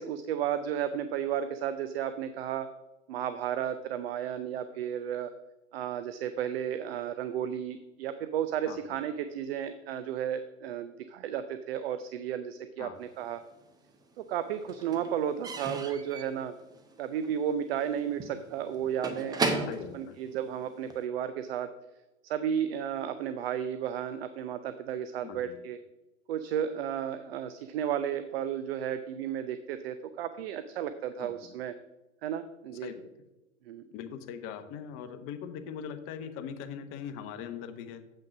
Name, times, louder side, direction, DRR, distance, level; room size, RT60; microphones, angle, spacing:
voice 1, 0.0-2.7 3.1-5.3 5.7-13.4 14.3-16.5 17.0-21.7 22.2-25.8 26.3-31.7 32.2-32.9 33.7-33.9, right 9 dB, 50° right, 11 dB, 0.6 m, -33 dB
voice 2, 8.6-9.0 12.8-12.9 19.7-20.2 25.2-25.6 31.2-31.5 32.8-33.1 33.9-38.0, left 8 dB, 30° left, 8 dB, 1.0 m, -41 dB
Slam / Squeak / Wood, 13.2-14.0 14.3-21.1, right 3 dB, 10° right, 0.7 m, -36 dB
7.8 x 5.9 x 5.9 m, 1.0 s
hypercardioid pair, 110°, 40 cm